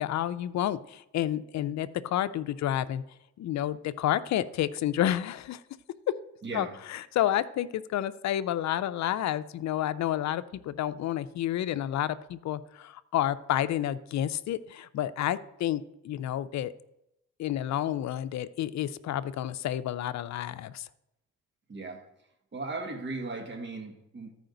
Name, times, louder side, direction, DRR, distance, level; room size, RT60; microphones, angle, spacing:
voice 1, 0.0-3.0 3.4-5.6 6.5-16.7 17.4-20.9, left 12 dB, 65° left, 14 dB, 0.6 m, -30 dB
voice 2, 6.4-6.8 21.7-22.1 22.5-24.3, right 3 dB, 35° right, 3 dB, 1.8 m, -37 dB
14.0 x 5.0 x 3.9 m, 0.85 s
cardioid pair, 90°, 30 cm